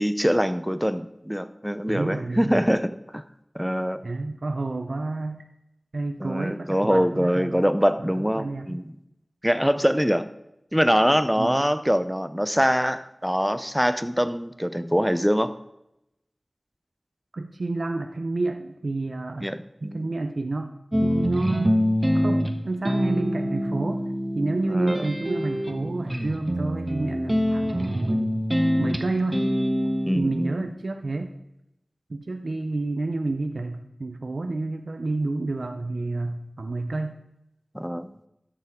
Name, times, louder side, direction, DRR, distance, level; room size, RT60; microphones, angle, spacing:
voice 1, 0.0-3.2 3.5-4.0 6.2-8.8 9.4-10.3 10.7-15.5 19.4-20.1 24.7-25.0 30.1-30.6 37.7-38.1, equal, 5° right, 12 dB, 0.6 m, -24 dB
voice 2, 1.9-2.6 4.0-5.4 5.9-7.6 8.0-8.8 11.4-11.6 17.3-19.5 19.8-20.7 21.0-21.9 22.1-24.1 24.3-28.4 28.8-29.5 30.1-31.4 32.1-37.2, right 2 dB, 75° right, 6 dB, 0.5 m, -29 dB
sound 1, 20.9-30.2, equal, 20° right, 1.1 m, -25 dB
12.5 x 6.9 x 3.6 m, 0.86 s
wide cardioid pair, 40°, 0 cm